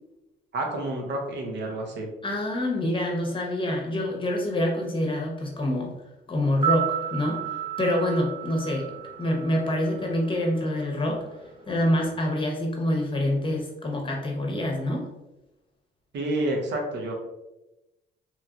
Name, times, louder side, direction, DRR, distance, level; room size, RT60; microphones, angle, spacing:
voice 1, 0.5-2.1 16.1-17.1, right 1 dB, 65° right, 1 dB, 0.8 m, -29 dB
voice 2, 2.2-5.9 6.3-8.9 9.2-11.2 11.7-15.1, left 1 dB, 25° left, 0 dB, 0.9 m, -26 dB
sound 1, 6.5-10.6 10.9-11.0, right 10 dB, 25° right, 0.6 m, -32 dB
3.0 x 2.7 x 2.4 m, 0.96 s
cardioid pair, 90°, 20 cm